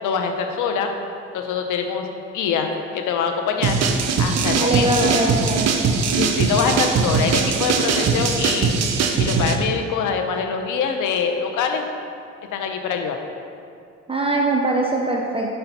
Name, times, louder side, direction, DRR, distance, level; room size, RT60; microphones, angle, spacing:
voice 1, 0.0-0.9 1.3-2.1 2.3-3.8 4.2-5.1 6.1-8.7 9.2-11.8 12.5-13.2, left 6 dB, 85° left, 4 dB, 0.8 m, -24 dB
sound 1, 3.6-9.6, right 5 dB, 60° right, 0.7 m, -21 dB
voice 2, 4.3-5.9 14.1-15.6, right 2 dB, 20° right, -1 dB, 0.7 m, -22 dB
5.5 x 5.1 x 5.8 m, 2.4 s
cardioid pair, 90°, 30 cm